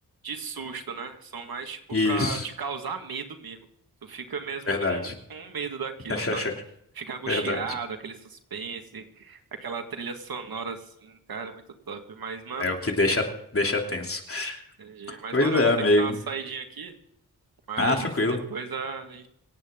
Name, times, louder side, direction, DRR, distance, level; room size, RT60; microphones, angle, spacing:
voice 1, 0.2-3.6 4.0-6.4 7.0-12.7 14.8-15.7 16.0-16.9 17.7-19.3, right 5 dB, 80° right, 6 dB, 1.9 m, -36 dB
voice 2, 1.9-2.4 4.7-5.1 6.1-6.5 7.3-7.6 12.6-13.2 13.5-14.6 15.1-16.1 17.8-18.4, left 2 dB, 40° left, 2 dB, 3.1 m, -24 dB
26.5 x 9.0 x 3.8 m, 0.75 s
cardioid pair, 65°, 35 cm